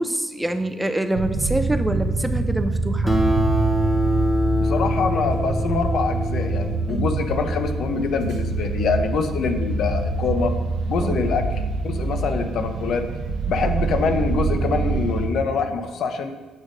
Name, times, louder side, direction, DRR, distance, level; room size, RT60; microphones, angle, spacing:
voice 1, 0.0-3.1 6.9-7.1 11.0-11.2, right 1 dB, 10° right, 8 dB, 0.4 m, -25 dB
sound 1, 1.2-15.3, right 3 dB, 80° right, 0.7 m, -25 dB
Acoustic guitar, 3.1-7.9, left 1 dB, 5° left, 0.8 m, -26 dB
voice 2, 4.6-10.5 10.9-13.1 13.5-16.3, left 5 dB, 65° left, 6 dB, 0.5 m, -25 dB
7.2 x 2.6 x 5.1 m, 1.3 s
supercardioid pair, 70°, 0 cm